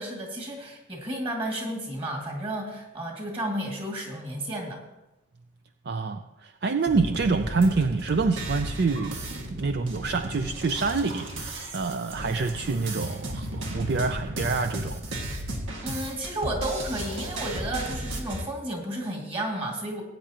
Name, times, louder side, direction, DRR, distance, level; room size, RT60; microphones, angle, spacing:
voice 1, 0.0-4.8 15.8-20.0, right 1 dB, 25° right, 0 dB, 2.1 m, -32 dB
voice 2, 5.9-9.2 9.5-15.0, right 4 dB, 55° right, 8 dB, 0.4 m, -27 dB
sound 1, 6.9-18.4, right 1 dB, 80° right, 1.7 m, -34 dB
18.0 x 9.1 x 2.9 m, 0.98 s
head